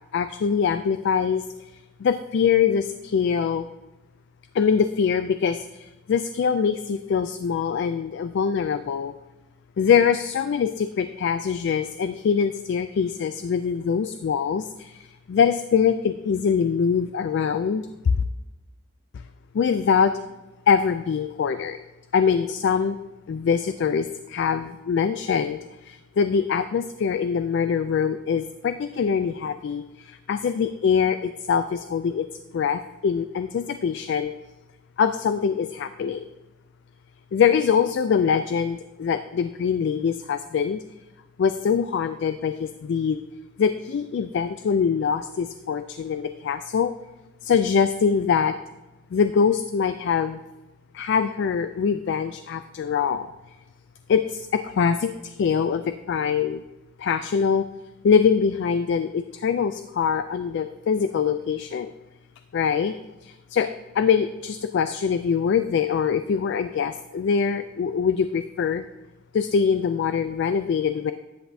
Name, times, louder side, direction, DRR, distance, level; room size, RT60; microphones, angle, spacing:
voice 1, 0.1-1.5 2.0-3.7 4.5-9.1 9.8-18.1 19.5-20.1 20.7-21.8 22.1-23.0 23.3-32.3 32.5-34.3 35.0-36.3 37.3-40.8 41.4-43.2 43.6-46.9 47.4-48.6 49.1-50.4 50.9-53.3 54.1-56.6 57.0-57.7 58.0-61.9 62.5-62.9 63.2-68.9 69.3-71.1, left 6 dB, 55° left, 11 dB, 0.3 m, -23 dB
10.0 x 8.0 x 2.7 m, 1.1 s
head